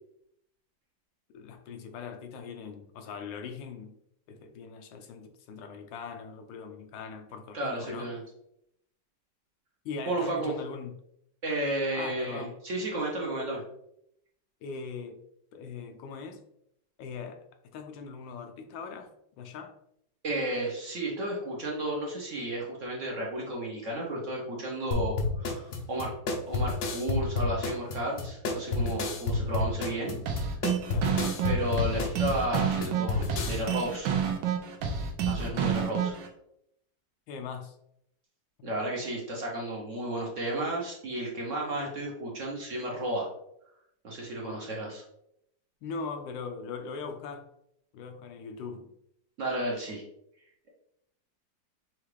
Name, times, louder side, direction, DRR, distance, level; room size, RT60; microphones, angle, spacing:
voice 1, 1.3-4.0 4.3-8.1 9.8-10.9 11.9-12.5 14.6-15.2 15.5-16.4 17.0-17.4 17.7-19.1 19.4-19.7 30.9-31.1 35.4-35.8 37.3-37.8 38.6-38.7 44.4-44.7 45.8-47.5 47.9-48.9, left 5 dB, 85° left, 5 dB, 1.3 m, -40 dB
voice 2, 7.5-8.2 10.1-10.5 11.4-13.6 20.2-26.1 26.5-30.2 31.4-34.1 35.2-36.1 38.6-43.3 44.0-45.0 49.4-50.0, right 1 dB, 55° right, -2 dB, 0.9 m, -33 dB
sound 1, 24.9-33.6, left 3 dB, 60° left, 0.7 m, -30 dB
sound 2, 30.3-36.3, right 7 dB, 75° right, 1.3 m, -29 dB
5.8 x 2.4 x 3.2 m, 0.77 s
omnidirectional pair, 2.0 m